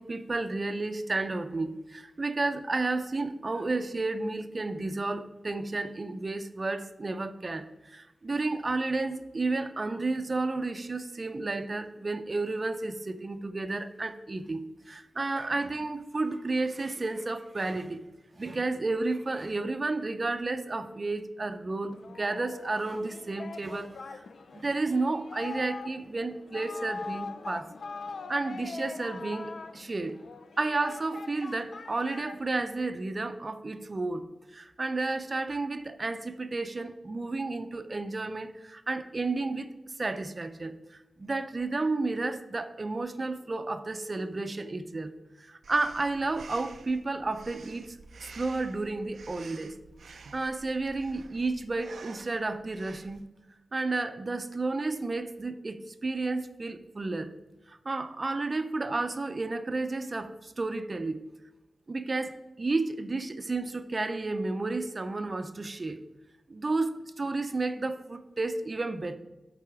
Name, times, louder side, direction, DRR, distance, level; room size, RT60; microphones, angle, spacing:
voice 1, 0.0-18.0 18.3-24.2 24.5-27.7 28.3-30.2 30.6-34.2 34.5-39.7 40.0-40.7 41.2-45.1 45.4-49.7 50.1-53.3 53.7-57.3 57.7-61.2 61.9-66.0 66.5-69.2, right 3 dB, 40° right, 10 dB, 0.6 m, -32 dB
Singing, 21.9-32.9, left 4 dB, 75° left, 0.4 m, -42 dB
Breathing, 45.6-53.2, right 4 dB, 90° right, 0.4 m, -50 dB
11.5 x 4.1 x 4.8 m, 1.1 s
wide cardioid pair, 85°, 0 cm